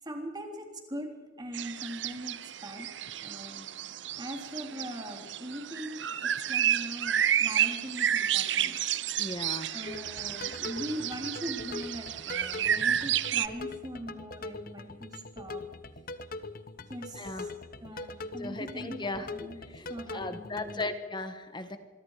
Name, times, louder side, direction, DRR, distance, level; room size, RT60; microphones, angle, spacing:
voice 1, 0.0-1.1 1.4-2.9 3.2-3.7 4.2-8.8 9.7-15.6 16.9-19.6 19.9-20.9, equal, 20° right, 3 dB, 3.6 m, -41 dB
sound 1, 1.5-13.5, right 10 dB, 65° right, 0.8 m, -31 dB
voice 2, 9.2-9.8 10.6-10.7 17.2-17.5 18.4-19.3 19.7-19.9 20.1-21.8, left 2 dB, 25° left, 9 dB, 1.4 m, -37 dB
sound 2, 9.9-20.9, left 3 dB, 45° left, 1.2 m, -42 dB
26.0 x 23.0 x 5.0 m, 1.4 s
head